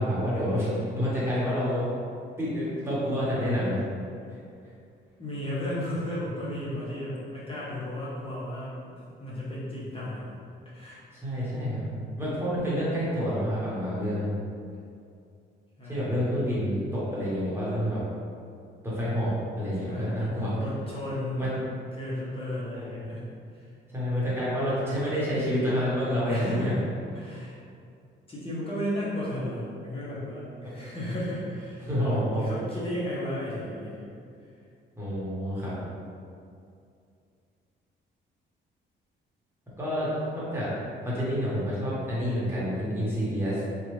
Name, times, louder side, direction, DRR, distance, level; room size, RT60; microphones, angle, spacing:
voice 1, 0.0-1.9 2.4-3.8 4.3-4.4 11.1-11.9 12.2-14.3 15.9-18.0 18.8-20.5 21.4-21.5 22.7-23.1 23.9-26.8 30.8-30.9 31.8-32.4 35.0-35.7 39.8-40.7 41.0-43.6, equal, 10° right, -9 dB, 1.3 m, -28 dB
voice 2, 5.2-8.7 9.2-10.3 10.6-11.0 15.8-16.2 19.8-21.5 21.9-23.2 23.5-23.7 26.2-26.9 27.1-27.6 28.3-34.1, left 1 dB, 25° left, -8 dB, 1.0 m, -34 dB
3.1 x 2.5 x 3.2 m, 2.4 s
cardioid pair, 90°, 20 cm